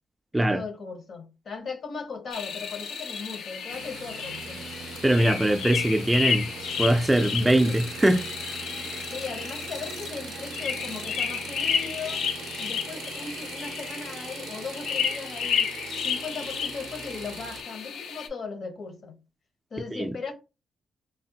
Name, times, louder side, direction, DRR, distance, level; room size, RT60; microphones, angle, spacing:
voice 1, 0.3-4.6 7.4-7.8 9.1-12.2 12.6-15.8 16.0-19.2 19.7-20.3, left 5 dB, 60° left, 0.7 m, -38 dB
sound 1, 2.3-18.3, left 7 dB, 85° left, 0.4 m, -32 dB
sound 2, 3.7-17.6, right 7 dB, 85° right, 0.4 m, -41 dB
voice 2, 5.0-6.5 6.8-8.3 19.9-20.1, right 1 dB, 10° right, 0.3 m, -22 dB
3.3 x 2.1 x 2.8 m
cardioid pair, 90°, 0 cm